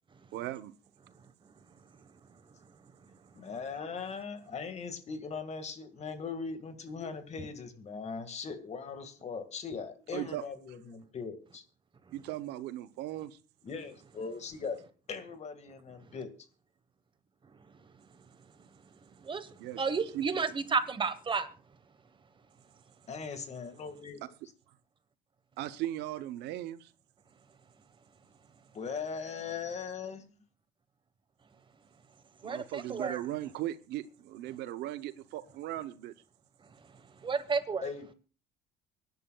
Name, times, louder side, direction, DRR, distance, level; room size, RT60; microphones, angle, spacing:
voice 1, 0.3-0.7 10.1-10.4 12.1-13.4 19.6-19.8 20.1-20.3 25.6-26.9 32.4-36.1, right 14 dB, 85° right, 0.8 m, -38 dB
voice 2, 3.4-11.6 13.6-14.8 15.1-16.3 23.1-24.2 28.7-30.4 37.8-38.1, left 5 dB, 40° left, 1.9 m, -40 dB
voice 3, 19.8-21.5 32.4-33.2 37.2-37.9, right 5 dB, 30° right, 1.3 m, -31 dB
24.5 x 11.0 x 2.3 m
cardioid pair, 110°, 17 cm